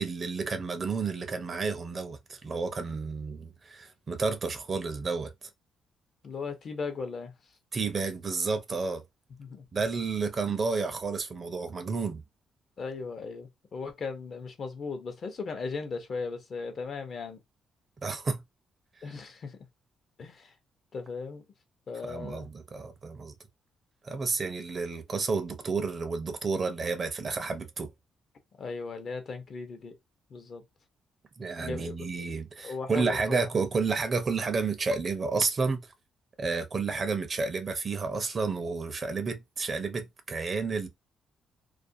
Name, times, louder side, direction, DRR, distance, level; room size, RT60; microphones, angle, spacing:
voice 1, 0.0-5.3 7.7-9.0 9.7-12.2 18.0-18.4 22.0-23.3 24.0-27.9 31.4-35.8 36.4-40.9, right 4 dB, 35° right, 0.5 m, -31 dB
voice 2, 6.2-7.3 9.4-9.6 12.8-17.4 19.0-19.6 20.2-20.5 20.9-21.4 21.9-22.5 28.6-29.9 30.3-30.6 31.6-32.1 32.6-33.5, left 4 dB, 45° left, 0.7 m, -37 dB
2.4 x 2.2 x 2.6 m
cardioid pair, 115°, 0 cm